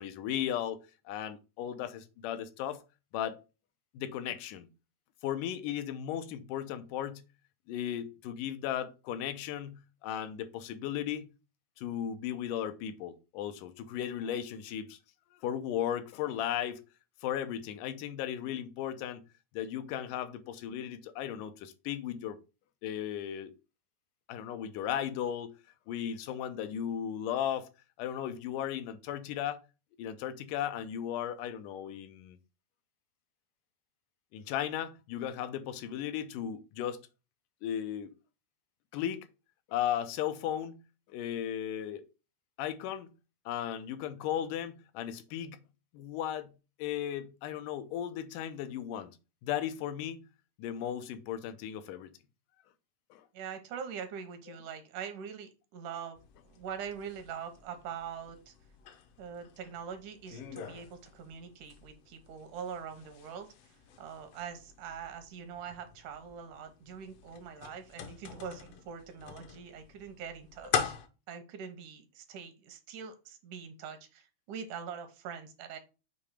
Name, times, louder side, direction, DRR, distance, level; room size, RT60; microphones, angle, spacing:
voice 1, 0.0-2.8 3.1-3.4 3.9-4.7 5.2-7.2 7.7-11.3 11.8-15.0 15.3-16.8 17.2-19.2 19.5-22.4 22.8-23.5 24.3-25.5 25.9-27.7 28.0-29.6 30.0-32.4 34.3-37.0 37.6-38.1 38.9-39.3 39.7-40.8 41.1-42.1 42.6-43.1 43.5-45.6 45.9-46.5 46.8-49.2 49.4-50.2 50.6-52.1 53.1-53.2, left 10 dB, 90° left, 2.3 m, -36 dB
voice 2, 53.3-56.2 56.4-58.5 59.2-71.0 71.3-75.8, right 7 dB, 80° right, 2.5 m, -43 dB
sound 1, 56.2-71.1, left 8 dB, 75° left, 1.4 m, -43 dB
7.1 x 2.8 x 4.8 m
omnidirectional pair, 3.6 m